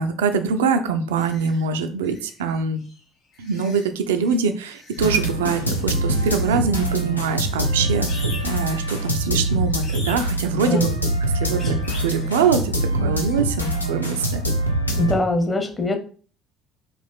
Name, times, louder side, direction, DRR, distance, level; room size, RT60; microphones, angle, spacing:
voice 1, 0.0-2.8 3.4-10.9 11.3-14.4, right 5 dB, 70° right, 8 dB, 0.4 m, -23 dB
sound 1, 1.2-1.6 2.0-3.0 3.3-3.9 4.2-5.2 5.6-6.9 7.2-12.6 12.9-13.4, left 3 dB, 50° left, 1.5 m, -43 dB
sound 2, 5.0-15.1, right 1 dB, 85° left, 0.5 m, -24 dB
voice 2, 15.0-16.0, left 2 dB, 25° left, 5 dB, 0.9 m, -22 dB
4.0 x 2.5 x 3.5 m, 0.41 s
figure-of-eight pair, 55°, 0 cm